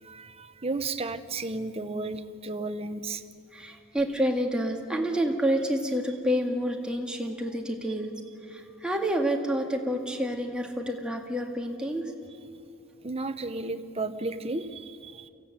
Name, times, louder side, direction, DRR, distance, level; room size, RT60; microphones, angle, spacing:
voice 1, 0.0-3.2 13.0-15.3, right 3 dB, 30° right, 10 dB, 0.9 m, -33 dB
voice 2, 3.5-8.1 8.5-12.0, equal, 5° right, 2 dB, 1.9 m, -28 dB
23.5 x 16.0 x 8.9 m, 2.3 s
head